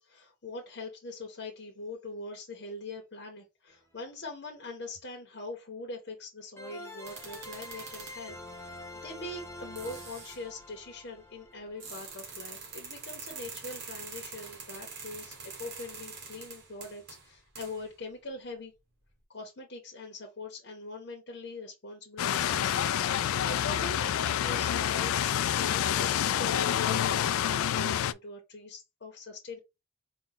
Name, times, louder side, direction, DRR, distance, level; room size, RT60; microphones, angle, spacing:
voice 1, 0.0-18.7 19.3-25.1 25.5-29.6, left 2 dB, 55° left, 0.8 m, -43 dB
sound 1, 3.7-3.8 6.6-12.4, left 1 dB, 10° left, 0.9 m, -46 dB
sound 2, 7.0-8.3 9.3-9.4 9.8-10.4 11.8-17.9, right 5 dB, 55° right, 1.7 m, -45 dB
sound 3, 22.2-28.1, left 10 dB, 85° left, 0.3 m, -28 dB
4.1 x 2.3 x 3.8 m
head